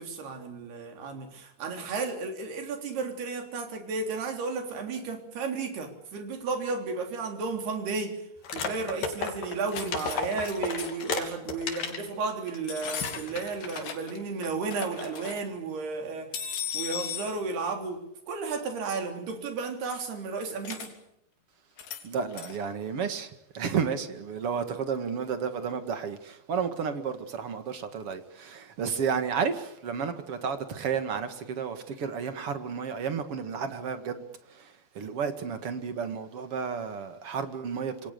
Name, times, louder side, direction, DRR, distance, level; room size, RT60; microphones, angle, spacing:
voice 1, 0.0-8.2 8.5-20.9, right 4 dB, 75° right, 5.5 m, -33 dB
sound 1, 8.4-12.1 12.5-12.6 13.0-13.7, left 5 dB, 55° left, 4.5 m, -33 dB
sound 2, 9.5-10.2 10.4-11.1 11.6-11.8 12.6-14.2 14.4-15.4 16.3-17.3 20.7-20.9 21.8-22.0 22.3-22.6, left 8 dB, 85° left, 5.4 m, -37 dB
voice 2, 22.0-34.2 34.5-38.1, right 6 dB, 45° right, 2.3 m, -32 dB
28.0 x 23.0 x 6.9 m
omnidirectional pair, 4.7 m